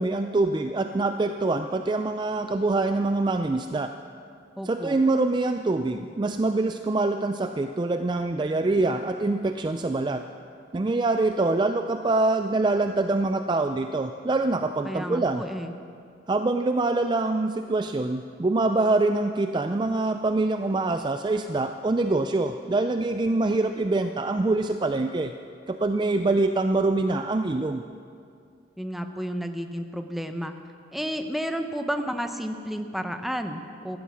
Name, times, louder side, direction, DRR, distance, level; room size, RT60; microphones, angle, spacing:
voice 1, 0.0-3.9 4.6-10.3 10.7-15.4 16.3-25.3 25.7-27.8, right 2 dB, 25° right, 7 dB, 0.3 m, -25 dB
voice 2, 4.6-5.0 14.8-15.7 28.8-30.5 30.9-34.0, equal, ahead, 6 dB, 0.7 m, -31 dB
15.0 x 12.5 x 6.2 m, 2.4 s
head